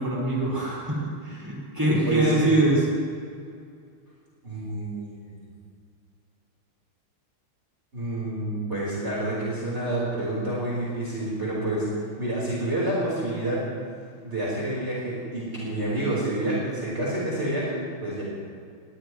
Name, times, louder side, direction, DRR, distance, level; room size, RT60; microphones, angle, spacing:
voice 1, 0.0-2.8, right 1 dB, 10° right, -6 dB, 5.3 m, -24 dB
voice 2, 1.9-2.6 4.4-5.4 7.9-11.9 12.2-13.6 14.2-18.2, right 1 dB, 30° right, -7 dB, 4.5 m, -28 dB
21.0 x 20.0 x 3.2 m, 2.3 s
omnidirectional pair, 2.3 m